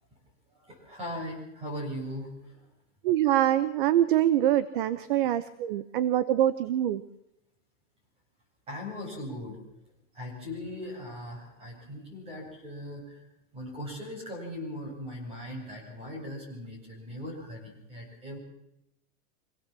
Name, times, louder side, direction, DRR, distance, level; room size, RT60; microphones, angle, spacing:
voice 1, 0.5-2.6 8.7-9.6 10.1-13.2 13.5-18.4, left 1 dB, 15° right, -1 dB, 7.8 m, -39 dB
voice 2, 3.0-7.0, right 12 dB, 40° right, 14 dB, 0.8 m, -24 dB
25.5 x 17.0 x 7.5 m, 0.85 s
supercardioid pair, 180°, 42 cm